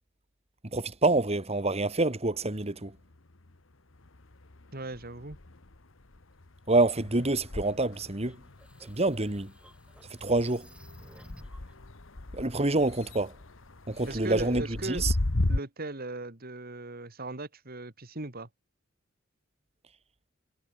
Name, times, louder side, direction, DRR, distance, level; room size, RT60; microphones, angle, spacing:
voice 1, 0.7-2.9 6.7-8.4 8.8-9.5 10.2-10.7 12.3-13.4 13.9-15.1, right 2 dB, 30° right, 2.1 m, -27 dB
sound 1, 2.3-3.6 3.9-15.6, left 2 dB, 70° left, 1.5 m, -37 dB
voice 2, 4.7-5.4 14.1-15.0 15.5-18.5, right 2 dB, 50° right, 2.5 m, -38 dB
sound 2, 8.2-11.7, right 1 dB, 5° right, 4.8 m, -55 dB
head